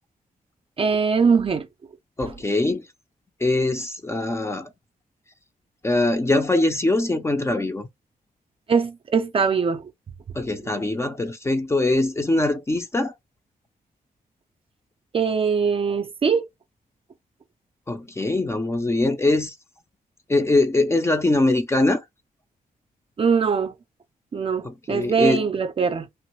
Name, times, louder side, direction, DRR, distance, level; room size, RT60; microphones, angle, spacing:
voice 1, 0.8-1.7 8.7-9.9 15.1-16.5 23.2-23.7 24.3-26.1, right 5 dB, 40° right, 0.5 m, -22 dB
voice 2, 2.2-2.8 3.4-4.7 5.8-7.9 10.3-13.1 17.9-19.5 20.3-22.0 24.6-25.4, left 2 dB, 15° left, 0.5 m, -22 dB
3.0 x 2.4 x 3.0 m
wide cardioid pair, 120°, 15 cm